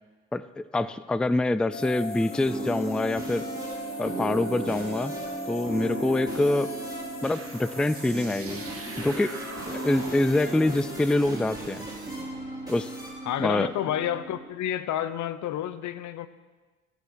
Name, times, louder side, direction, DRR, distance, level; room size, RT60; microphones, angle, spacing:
voice 1, 0.3-3.4 4.0-5.1 5.5-6.7 7.2-8.6 9.0-9.3 9.7-11.9 12.7-12.9 13.4-13.7, left 2 dB, 5° left, 15 dB, 0.4 m, -25 dB
sound 1, 1.7-11.2, left 1 dB, 45° left, 1.5 m, -39 dB
sound 2, 1.7-14.4, right 1 dB, 15° right, 4.8 m, -37 dB
sound 3, 7.2-12.5, right 5 dB, 50° right, 1.6 m, -44 dB
voice 2, 13.3-16.3, left 11 dB, 75° left, 14 dB, 0.8 m, -30 dB
16.0 x 8.4 x 6.3 m, 1.3 s
cardioid pair, 90°, 30 cm